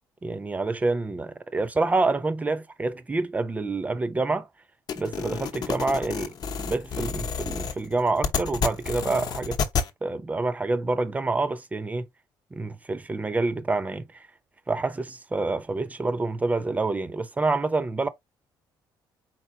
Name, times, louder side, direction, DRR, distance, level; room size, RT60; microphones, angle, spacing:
voice 1, 0.2-4.5 5.0-9.6 10.0-12.0 12.5-14.3 14.7-18.1, right 3 dB, 20° right, 0.6 m, -27 dB
sound 1, 4.9-9.9, left 6 dB, 50° left, 0.9 m, -30 dB
4.5 x 3.9 x 2.7 m
cardioid pair, 115°, 8 cm